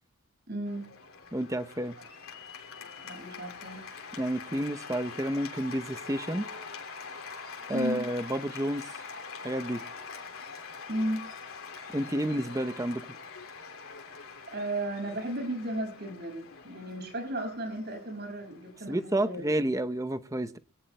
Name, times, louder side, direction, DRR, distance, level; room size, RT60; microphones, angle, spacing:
voice 1, 0.5-0.9 3.0-3.8 7.7-8.0 10.9-11.2 14.5-19.4, right 1 dB, 50° right, 6.3 m, -34 dB
Cheering / Applause, 0.7-19.9, left 5 dB, 75° left, 2.9 m, -44 dB
voice 2, 1.3-2.0 4.2-6.4 7.7-8.9 9.4-9.8 11.9-13.0 18.9-20.6, right 1 dB, 15° right, 0.7 m, -30 dB
25.5 x 18.0 x 2.2 m
head